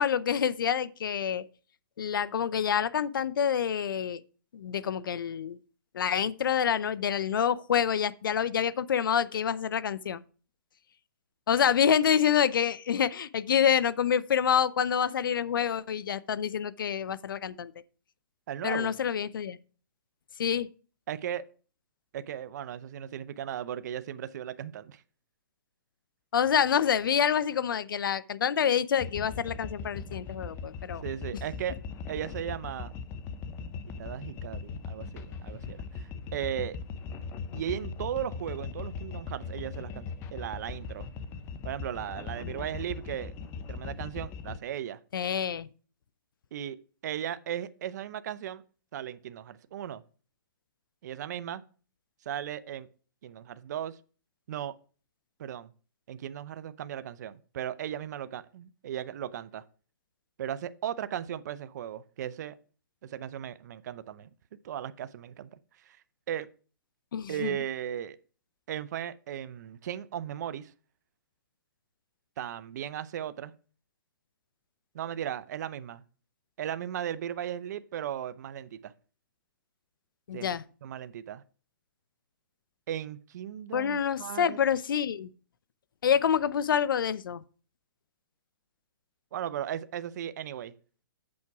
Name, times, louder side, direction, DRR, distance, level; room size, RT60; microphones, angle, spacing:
voice 1, 0.0-1.4 2.0-4.2 4.5-5.6 5.9-10.2 11.5-17.7 18.6-19.6 20.4-20.7 26.3-31.0 42.4-42.6 45.1-45.7 67.1-67.5 80.3-80.6 83.7-85.3 86.0-87.4, left 8 dB, 75° left, 0.6 m, -27 dB
voice 2, 18.5-18.9 21.1-21.4 22.1-25.0 31.0-31.8 32.1-32.9 34.0-36.8 37.5-41.1 41.6-43.3 43.7-45.0 46.5-48.6 48.9-50.0 51.0-51.6 52.3-52.9 53.2-54.0 54.5-54.8 55.4-55.7 56.1-59.6 60.4-62.5 63.0-64.3 64.6-65.5 65.8-66.0 66.3-66.5 67.3-68.2 68.7-70.7 72.4-73.5 74.9-76.0 76.6-78.9 80.3-80.5 80.8-81.4 82.9-84.6 89.3-90.7, right 10 dB, 55° right, 0.6 m, -36 dB
sound 1, 29.0-44.6, left 5 dB, 20° left, 0.7 m, -39 dB
8.5 x 5.9 x 4.7 m
hypercardioid pair, 150°, 11 cm